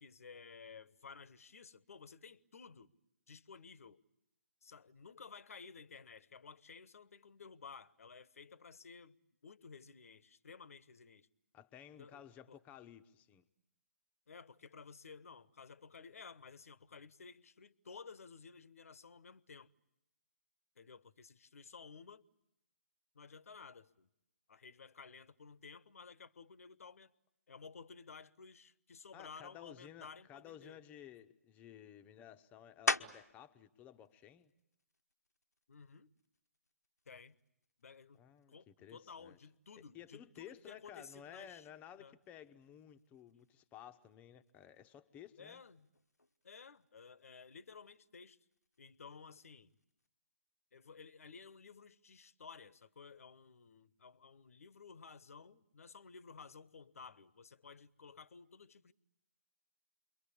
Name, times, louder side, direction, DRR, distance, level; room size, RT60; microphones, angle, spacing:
voice 1, 0.0-2.9 3.3-4.0 4.6-9.2 9.4-11.3 12.0-12.2 12.5-12.6 14.3-19.7 20.8-22.2 23.1-24.1 24.5-27.1 27.5-30.8 35.7-36.1 37.1-37.3 37.8-38.2 38.5-41.6 42.0-42.1 45.4-45.9 46.4-48.4 48.8-49.7 50.7-58.9, left 5 dB, 65° left, 1.0 m, -55 dB
voice 2, 11.5-13.5 29.1-34.5 38.1-39.4 39.9-45.6, left 10 dB, 15° left, 1.0 m, -55 dB
sound 1, 32.9-33.5 34.0-38.4 39.0-44.1 44.4-50.1, left 2 dB, 90° left, 1.1 m, -45 dB
28.5 x 23.0 x 8.5 m
figure-of-eight pair, 135°, 8 cm